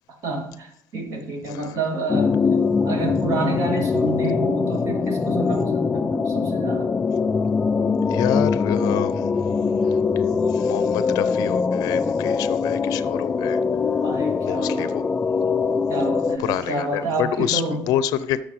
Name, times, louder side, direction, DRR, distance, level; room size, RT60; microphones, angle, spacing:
voice 1, 0.2-2.4 2.8-6.9 14.0-14.9 15.9-17.8, right 2 dB, 60° right, 2 dB, 2.3 m, -28 dB
voice 2, 1.4-1.8 8.1-9.3 9.8-13.6 14.4-15.1 16.4-18.4, left 11 dB, 85° left, 14 dB, 0.5 m, -27 dB
sound 1, 2.1-16.4, left 5 dB, 20° left, 0.3 m, -22 dB
13.5 x 6.6 x 3.1 m, 0.72 s
cardioid pair, 130°, 6 cm